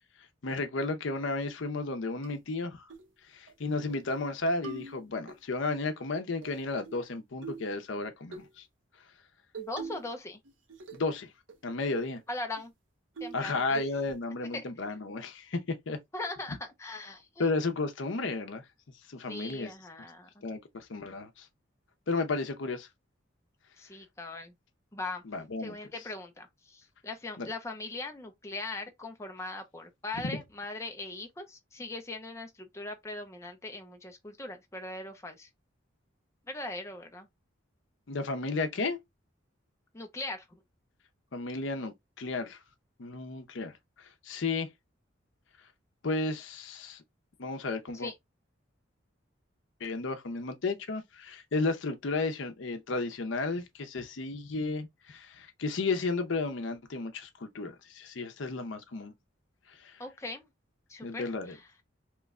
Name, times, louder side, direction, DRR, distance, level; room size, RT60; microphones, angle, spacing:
voice 1, 0.4-2.9 3.3-8.6 10.9-11.3 11.6-12.2 13.3-16.0 17.4-18.6 19.1-19.7 20.4-21.5 22.1-22.9 25.3-25.7 27.4-27.5 38.1-39.0 41.3-42.6 43.0-44.7 46.0-47.0 47.4-48.1 49.8-59.1 59.7-60.0 61.0-61.5, left 3 dB, 70° left, 0.6 m, -33 dB
sound 1, 2.2-2.3 2.9-3.1 3.5-3.6 3.9-4.3 4.6-5.4 6.4-7.0 7.4-7.7 8.3-8.5 9.5-10.1 10.4-11.1 11.5-11.6 11.9-12.1 12.6-12.7 13.2-13.5 13.7-14.2, right 5 dB, 70° right, 0.8 m, -43 dB
voice 2, 9.6-10.4 12.3-12.7 13.2-13.8 14.5-14.6 16.1-17.5 19.3-20.4 23.8-24.5 24.9-25.2 25.6-35.5 36.5-37.3 39.9-40.6 47.9-48.1 60.0-60.5 60.9-61.7, left 2 dB, 15° left, 0.5 m, -40 dB
3.0 x 2.2 x 3.5 m
head